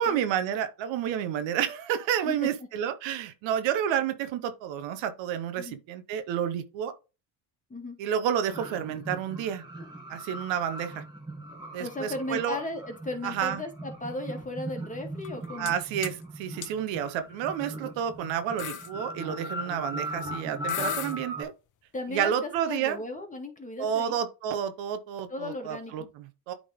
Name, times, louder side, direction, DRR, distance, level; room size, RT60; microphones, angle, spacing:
voice 1, 0.0-6.9 8.0-9.6 10.1-11.0 11.7-12.6 13.2-13.6 15.6-21.5 22.1-23.0 23.8-26.5, right 9 dB, 75° right, 1.0 m, -30 dB
sound 1, 8.5-21.4, equal, 10° right, 2.5 m, -39 dB
voice 2, 11.8-15.7 21.9-24.2 25.3-26.1, left 2 dB, 15° left, 2.0 m, -36 dB
sound 2, 15.2-15.7 16.0-16.2 16.6-16.7 17.6-17.8 18.1-18.2 18.6-18.9 20.3-20.4 20.7-21.1, left 10 dB, 45° left, 0.7 m, -35 dB
8.5 x 3.9 x 3.5 m
supercardioid pair, 85°, 45 cm